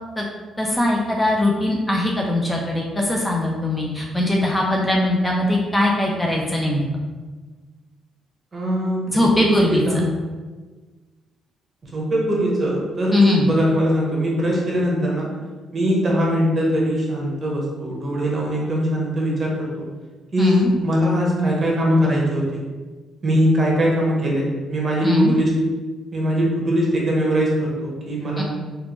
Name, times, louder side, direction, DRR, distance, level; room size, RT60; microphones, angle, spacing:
voice 1, 0.6-6.8 9.1-9.8 13.1-13.5 20.4-20.7 25.0-25.3 28.4-28.5, left 1 dB, 15° left, -1 dB, 0.5 m, -20 dB
voice 2, 8.5-10.0 11.8-15.3 15.7-19.7 20.3-22.6 23.2-25.5 26.1-28.4, equal, 35° right, -3 dB, 1.0 m, -21 dB
3.4 x 2.5 x 3.0 m, 1.3 s
cardioid pair, 90°, 0 cm